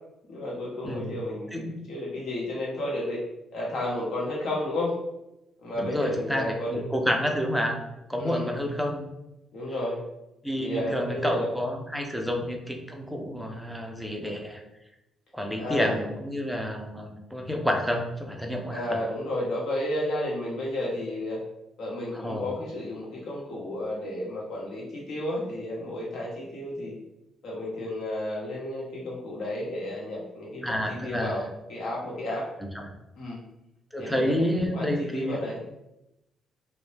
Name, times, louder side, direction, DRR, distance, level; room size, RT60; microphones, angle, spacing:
voice 1, 0.3-3.2 3.5-5.0 5.6-6.8 8.2-8.6 9.5-10.0 10.6-11.5 12.2-12.3 15.6-16.0 18.7-21.4 21.8-27.0 27.4-31.4 31.7-32.5 33.2-33.4 34.0-35.6, left 1 dB, 70° left, -4 dB, 0.8 m, -32 dB
voice 2, 0.8-1.2 1.5-1.7 5.8-7.8 8.1-9.1 10.4-14.6 15.3-19.0 22.2-22.5 30.6-31.4 32.7-32.9 33.9-35.4, equal, ahead, 2 dB, 0.4 m, -29 dB
2.1 x 2.0 x 3.1 m, 0.92 s
cardioid pair, 90°, 0 cm